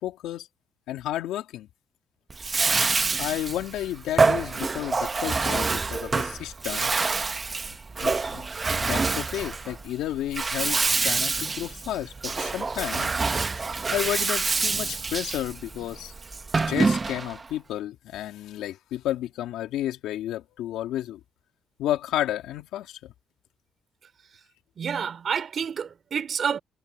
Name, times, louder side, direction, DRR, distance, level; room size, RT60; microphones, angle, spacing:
voice 1, 0.0-0.5 0.9-1.7 3.2-7.0 7.7-8.5 8.8-13.1 13.9-16.1 16.7-21.2 21.8-23.1, left 13 dB, 90° left, 2.7 m, -32 dB
Bathtub (filling or washing), 2.3-17.5, right 4 dB, 30° right, 1.0 m, -26 dB
voice 2, 24.8-26.6, right 7 dB, 50° right, 3.3 m, -28 dB
cardioid pair, 90°, 0 cm